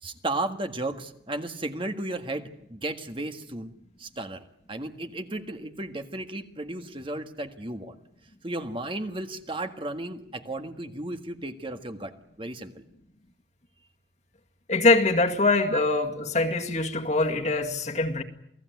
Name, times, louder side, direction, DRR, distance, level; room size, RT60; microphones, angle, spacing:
voice 1, 0.0-3.7 4.0-8.0 8.4-12.1 12.4-12.8 15.7-15.8, right 2 dB, 25° right, 1.7 m, -34 dB
voice 2, 14.7-18.2, left 3 dB, 40° left, 2.1 m, -23 dB
28.5 x 18.5 x 9.4 m
head